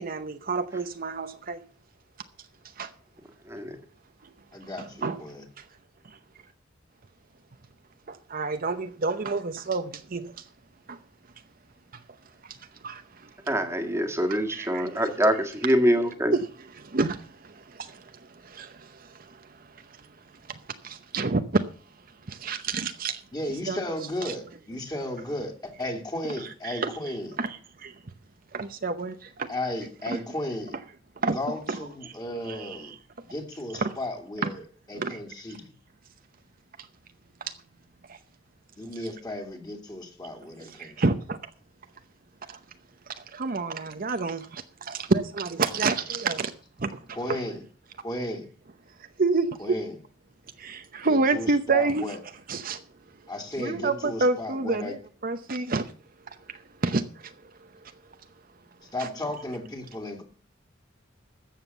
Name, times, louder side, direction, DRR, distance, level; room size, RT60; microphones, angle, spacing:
voice 1, 0.0-1.6 2.8-2.9 4.8-5.2 6.0-6.2 8.1-10.4 10.9-11.0 12.4-12.6 12.8-13.3 14.5-15.0 16.3-16.4 16.8-20.1 20.5-21.6 22.3-23.2 23.7-23.8 24.2-24.3 26.6-26.9 27.4-28.0 28.5-29.5 30.1-30.2 31.2-31.4 32.5-33.0 33.8-33.9 35.0-35.2 37.4-37.5 38.1-38.2 40.8-41.4 42.5-42.6 43.1-46.5 46.8-47.0 49.2-49.5 50.6-52.0 52.5-52.8 53.6-55.0 55.2-55.9 56.3-57.4 57.8-57.9, right 3 dB, 50° right, 0.8 m, -29 dB
voice 2, 4.5-5.4 23.3-27.4 29.5-30.7 31.3-32.9 33.2-35.7 38.8-41.0 47.1-47.6 48.0-48.5 49.6-50.0 51.0-52.2 53.3-55.0 58.9-60.2, left 1 dB, 20° left, 2.5 m, -34 dB
voice 3, 13.5-16.3, equal, 15° right, 1.7 m, -24 dB
13.5 x 7.4 x 6.9 m
head